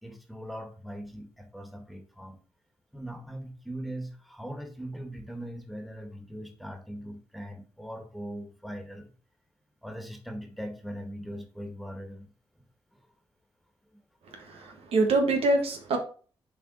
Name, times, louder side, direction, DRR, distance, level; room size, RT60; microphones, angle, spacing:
voice 1, 0.0-2.4 2.9-9.1 9.8-12.3, equal, ahead, 5 dB, 1.9 m, -40 dB
voice 2, 14.3-16.0, right 2 dB, 80° right, 3 dB, 1.5 m, -25 dB
7.2 x 4.2 x 4.2 m, 0.40 s
cardioid pair, 55°, 10 cm